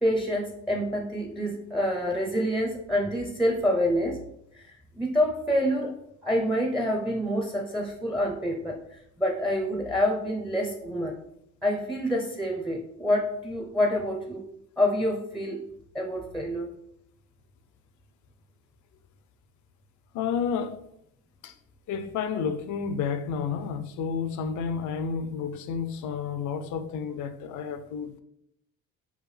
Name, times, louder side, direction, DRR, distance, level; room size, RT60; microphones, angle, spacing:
voice 1, 0.0-4.2 4.5-5.9 6.2-11.1 11.6-14.4 14.8-15.6 15.9-16.7, equal, ahead, 0.5 m, -27 dB
voice 2, 20.1-20.8 21.4-21.5 21.9-28.2, left 6 dB, 75° left, 0.5 m, -31 dB
4.6 x 2.5 x 3.2 m
cardioid pair, 90°, 30 cm